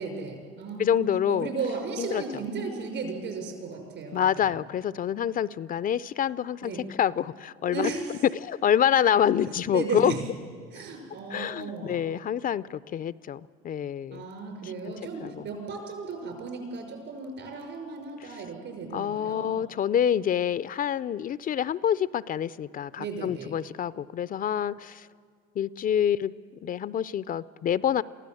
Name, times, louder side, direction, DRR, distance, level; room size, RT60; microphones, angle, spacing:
voice 1, 0.0-4.6 6.6-6.8 7.7-8.2 9.6-10.2 10.7-12.0 14.1-19.6 23.0-23.5, right 4 dB, 60° right, 4 dB, 5.5 m, -35 dB
voice 2, 0.8-1.5 2.0-2.2 4.1-6.7 7.0-7.9 8.3-10.1 11.3-14.2 15.2-15.4 18.9-25.1 25.6-26.3 26.6-28.0, left 9 dB, 40° left, 18 dB, 0.5 m, -27 dB
23.5 x 15.0 x 7.7 m, 2.2 s
supercardioid pair, 80°, 21 cm